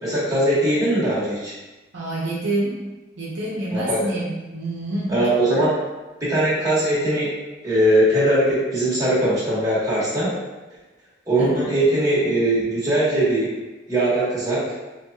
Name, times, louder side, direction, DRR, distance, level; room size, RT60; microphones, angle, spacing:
voice 1, 0.0-1.5 3.7-4.0 5.1-5.7 6.2-7.3 7.6-10.3 11.3-13.5 13.9-14.6, right 1 dB, 20° right, -10 dB, 1.4 m, -20 dB
voice 2, 1.9-2.8 3.2-5.1 11.4-11.5, right 2 dB, 75° right, -6 dB, 0.8 m, -27 dB
4.5 x 2.6 x 2.3 m, 1.1 s
head